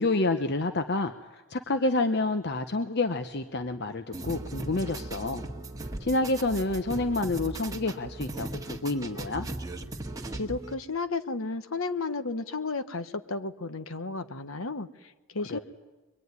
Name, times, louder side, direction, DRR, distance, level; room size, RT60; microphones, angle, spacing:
voice 1, 0.0-5.4 6.0-9.5 15.5-15.6, left 2 dB, 50° left, 8 dB, 0.9 m, -28 dB
sound 1, 4.1-10.7, right 2 dB, 15° right, 1.7 m, -38 dB
voice 2, 10.3-15.6, left 3 dB, 70° left, 11 dB, 1.2 m, -33 dB
25.0 x 23.0 x 9.6 m, 1.2 s
head